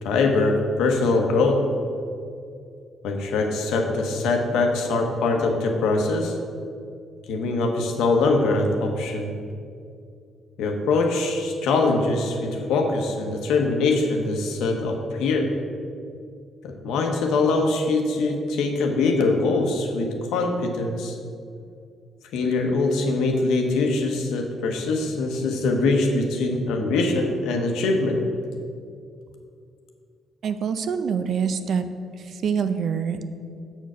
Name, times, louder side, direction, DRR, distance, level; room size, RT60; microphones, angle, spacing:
voice 1, 0.0-1.7 3.0-6.4 7.3-9.4 10.6-15.6 16.6-21.2 22.3-28.3, left 3 dB, 90° left, 3 dB, 0.9 m, -23 dB
voice 2, 30.4-31.8 32.4-33.2, right 6 dB, 60° right, 9 dB, 0.5 m, -25 dB
7.0 x 4.5 x 6.1 m, 2.4 s
cardioid pair, 90°, 0 cm